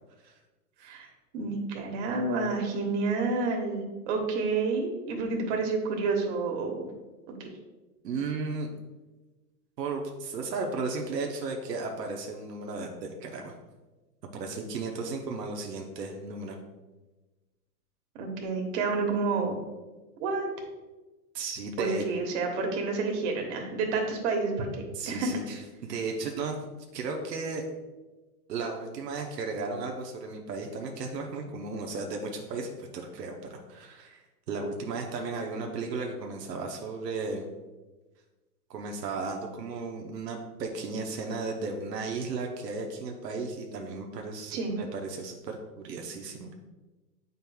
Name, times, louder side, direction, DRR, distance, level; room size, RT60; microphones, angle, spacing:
voice 1, 1.3-6.8 7.3-7.5 18.2-19.6 20.2-20.5 21.8-24.7 25.1-25.4 44.5-44.7, right 3 dB, 45° right, 2 dB, 1.4 m, -29 dB
voice 2, 8.0-8.7 9.8-13.5 14.3-16.6 21.3-22.0 24.9-26.6 26.9-27.6 28.5-34.2 34.5-37.5 38.7-44.6 44.9-46.5, right 4 dB, 90° right, 2 dB, 1.0 m, -35 dB
7.8 x 5.4 x 2.3 m, 1.2 s
hypercardioid pair, 135°, 47 cm